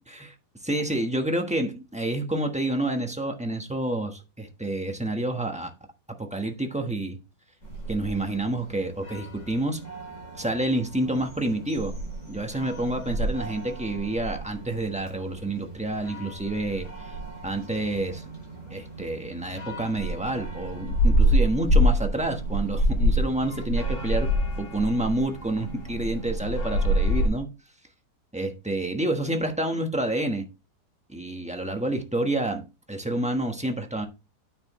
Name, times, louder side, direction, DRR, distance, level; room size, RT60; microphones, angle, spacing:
voice 1, 0.6-5.7 6.2-7.2 7.9-9.8 10.4-11.9 12.3-17.1 17.4-18.2 18.7-24.3 24.6-27.5 28.3-30.4 31.1-34.1, right 1 dB, 5° right, 1.0 m, -28 dB
sound 1, 7.6-27.3, equal, 50° left, 5.5 m, -28 dB
9.5 x 6.6 x 3.1 m
omnidirectional pair, 1.7 m